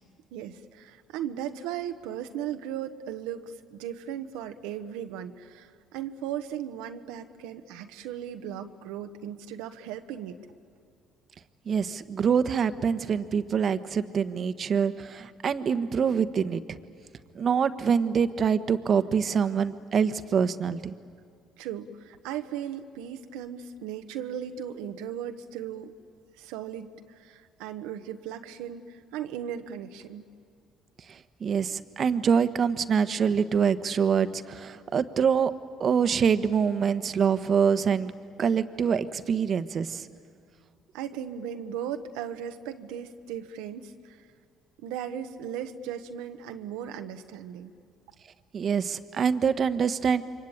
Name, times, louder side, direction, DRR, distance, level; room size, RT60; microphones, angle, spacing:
voice 1, 0.3-10.4 21.6-25.9 26.4-30.2 40.9-44.2 44.8-47.7, right 9 dB, 80° right, 7 dB, 1.1 m, -37 dB
voice 2, 11.7-16.8 17.3-20.9 31.1-35.5 35.8-38.1 38.4-40.1 48.5-50.2, right 6 dB, 50° right, 11 dB, 1.2 m, -25 dB
28.0 x 24.0 x 8.8 m, 2.2 s
hypercardioid pair, 65°, 0 cm